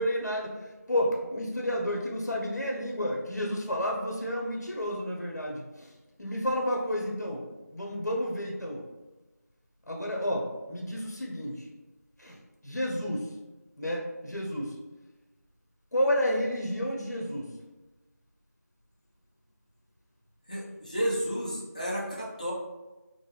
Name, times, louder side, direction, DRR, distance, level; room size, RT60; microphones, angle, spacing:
voice 1, 0.0-5.9 6.2-8.9 9.9-11.7 12.2-12.4 12.6-13.4 13.8-14.8 15.9-17.6, equal, 70° left, -1 dB, 0.8 m, -31 dB
voice 2, 20.5-22.5, equal, 25° left, -4 dB, 0.5 m, -32 dB
3.8 x 2.1 x 3.1 m, 1.1 s
figure-of-eight pair, 175°, 9 cm